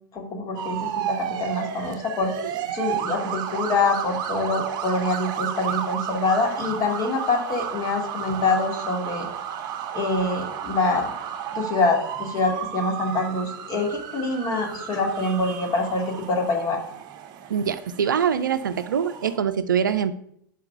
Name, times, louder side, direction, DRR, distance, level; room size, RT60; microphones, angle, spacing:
voice 1, 0.1-2.3 2.7-9.3 9.9-11.1 11.5-16.8, left 3 dB, 35° left, 2 dB, 2.0 m, -25 dB
sound 1, 0.5-19.4, right 9 dB, 40° right, 0.8 m, -32 dB
voice 2, 17.5-20.1, right 8 dB, 70° right, 11 dB, 0.5 m, -24 dB
5.8 x 4.9 x 6.7 m, 0.71 s
figure-of-eight pair, 90°, 11 cm